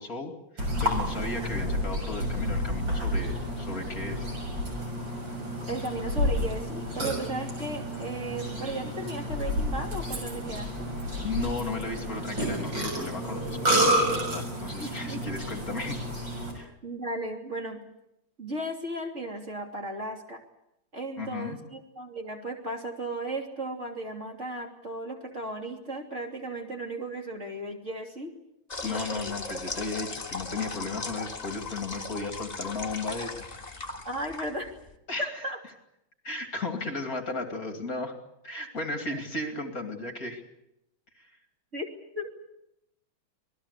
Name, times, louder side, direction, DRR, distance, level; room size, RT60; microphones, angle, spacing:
voice 1, 0.0-4.3 11.2-16.0 16.5-16.8 21.2-21.6 28.8-33.5 35.1-35.4 36.2-38.1 38.4-40.4 41.2-41.4, left 3 dB, 40° left, 5 dB, 3.0 m, -35 dB
Burping eructation, 0.6-16.5, equal, 60° right, 7.5 m, -30 dB
voice 2, 5.7-10.9 14.8-15.4 16.8-17.8 18.4-20.4 20.9-28.3 28.8-29.3 34.0-34.7 35.2-35.6 41.7-41.9 42.1-42.3, right 1 dB, 30° right, 2 dB, 3.3 m, -35 dB
sound 1, 28.7-34.9, left 3 dB, 20° left, 1.8 m, -37 dB
26.5 x 19.0 x 8.3 m, 0.82 s
omnidirectional pair, 2.3 m